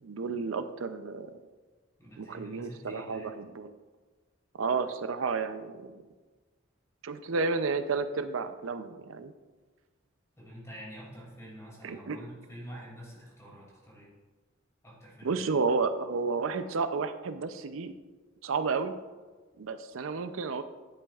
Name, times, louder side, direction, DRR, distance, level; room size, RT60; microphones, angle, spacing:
voice 1, 0.0-1.4 2.2-3.7 4.6-6.0 7.0-9.3 11.8-12.2 15.2-17.9 18.4-18.9 19.6-20.6, right 4 dB, 85° right, 10 dB, 0.5 m, -31 dB
voice 2, 2.0-3.3 10.4-14.1 14.8-15.4, equal, 15° left, -5 dB, 2.5 m, -47 dB
10.0 x 8.5 x 2.4 m, 1.3 s
head